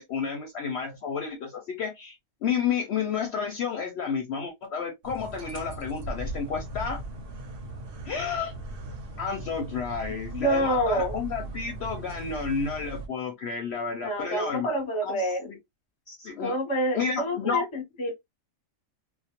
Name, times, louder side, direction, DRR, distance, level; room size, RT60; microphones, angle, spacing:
voice 1, 0.0-7.0 8.0-8.5 9.2-14.7 15.0-15.6 16.1-16.6 16.9-17.6, left 6 dB, 65° left, 0.7 m, -31 dB
sound 1, 5.0-13.1, right 2 dB, 55° right, 0.7 m, -38 dB
voice 2, 10.3-11.2 14.0-15.5 16.4-18.1, right 1 dB, 30° left, 0.7 m, -27 dB
2.2 x 2.1 x 2.8 m
omnidirectional pair, 1.4 m